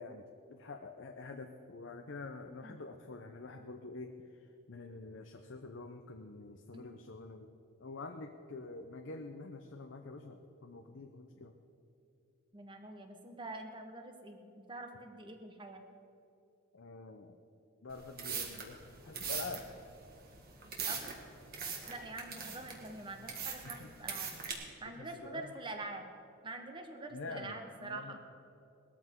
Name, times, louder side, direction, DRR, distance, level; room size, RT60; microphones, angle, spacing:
voice 1, 0.0-7.5 7.8-11.5 16.7-17.4 17.8-18.8 19.0-19.6 23.6-23.9 24.8-25.5 27.1-27.6 27.8-28.2, left 3 dB, 60° left, 5 dB, 0.7 m, -47 dB
voice 2, 12.5-15.8 20.9-21.0 21.9-24.3 24.8-26.1 26.4-28.2, right 2 dB, 25° right, 5 dB, 1.1 m, -45 dB
sound 1, 17.9-24.5, right 6 dB, 45° right, 1.9 m, -41 dB
19.5 x 13.5 x 3.7 m, 2.7 s
head